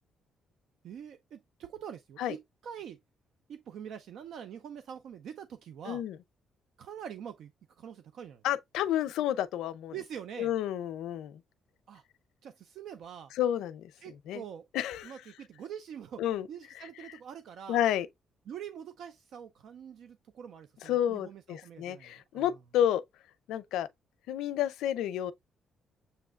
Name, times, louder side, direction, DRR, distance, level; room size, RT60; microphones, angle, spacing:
voice 1, 0.8-3.0 3.5-6.0 6.8-7.5 7.8-8.4 9.9-10.5 11.9-12.0 12.4-13.3 14.0-14.7 15.0-16.2 16.5-17.8 18.5-22.6, right 8 dB, 75° right, 0.4 m, -44 dB
voice 2, 5.9-6.2 8.4-9.9 10.4-11.4 13.4-13.9 14.3-14.4 14.7-15.1 16.2-16.5 17.7-18.1 20.9-23.0 23.5-23.9 24.3-25.3, left 11 dB, 90° left, 0.5 m, -30 dB
6.8 x 3.1 x 2.3 m
cardioid pair, 90°, 0 cm